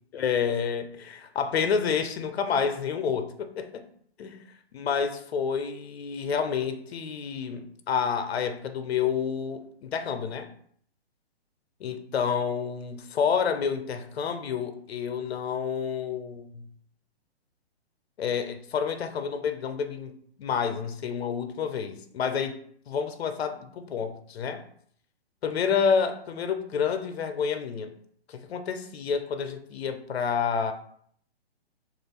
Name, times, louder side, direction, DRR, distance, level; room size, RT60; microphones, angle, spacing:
voice 1, 0.1-3.7 4.2-4.4 4.7-10.5 11.8-16.6 18.2-22.6 22.9-24.6 25.4-27.9 28.3-30.7, left 6 dB, 70° left, 0.6 m, -29 dB
3.1 x 2.4 x 3.4 m
hypercardioid pair, 150°, 32 cm